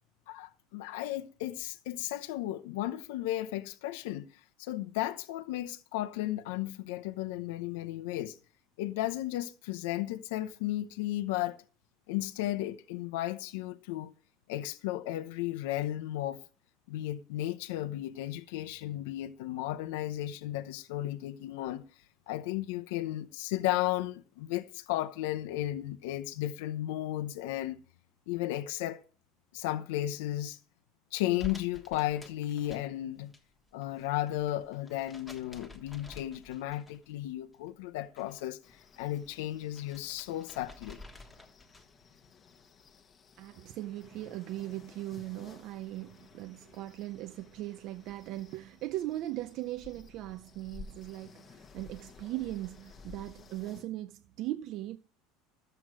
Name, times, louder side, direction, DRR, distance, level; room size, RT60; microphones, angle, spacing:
voice 1, 0.3-8.4 8.8-11.6 12.1-14.1 14.5-16.4 16.9-27.8 28.3-29.0 29.5-30.6 31.1-33.3 33.7-41.0, left 14 dB, 75° left, 0.7 m, -34 dB
sound 1, 31.4-33.4 33.7-37.2 37.5-38.5 38.8-42.0, left 2 dB, 5° left, 1.4 m, -51 dB
sound 2, 38.6-53.8, left 5 dB, 20° left, 1.1 m, -55 dB
voice 2, 43.4-55.0, right 15 dB, 40° right, 0.5 m, -39 dB
13.5 x 7.9 x 6.2 m
cardioid pair, 175°, 0 cm